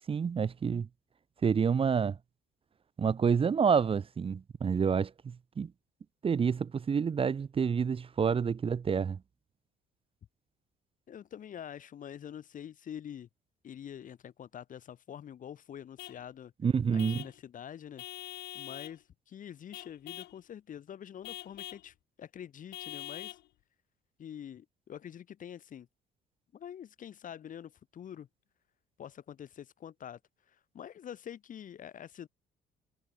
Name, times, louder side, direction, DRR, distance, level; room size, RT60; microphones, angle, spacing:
voice 1, 0.1-0.9 1.4-2.2 3.0-5.7 6.2-9.2 16.6-17.2, right 6 dB, 35° right, 1.5 m, -28 dB
voice 2, 11.1-13.3 13.6-16.5 16.9-18.0 18.5-23.4 24.2-25.9 26.5-28.3 29.0-30.2 30.5-32.3, left 9 dB, 50° left, 5.3 m, -46 dB
Vehicle horn car horn honking / Truck, 16.0-16.2 17.0-17.4 18.0-19.0 19.7-20.4 21.2-21.9 22.7-23.5, left 16 dB, 75° left, 5.3 m, -44 dB
cardioid pair, 110°, 17 cm